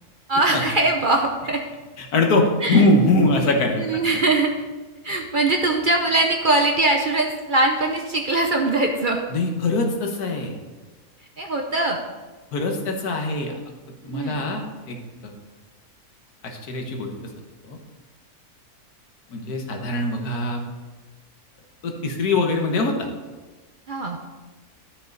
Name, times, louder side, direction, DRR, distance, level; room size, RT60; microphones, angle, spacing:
voice 1, 0.3-1.6 2.6-2.8 3.8-4.6 5.0-9.2 11.4-12.0 14.1-14.3 23.9-24.2, right 2 dB, 45° right, 3 dB, 0.7 m, -21 dB
voice 2, 2.0-3.9 9.3-10.5 12.5-13.5 14.0-15.3 16.4-17.1 17.6-17.8 19.3-20.6 21.8-23.1, left 2 dB, 90° left, 3 dB, 1.7 m, -22 dB
11.5 x 6.4 x 3.9 m, 1.3 s
omnidirectional pair, 1.6 m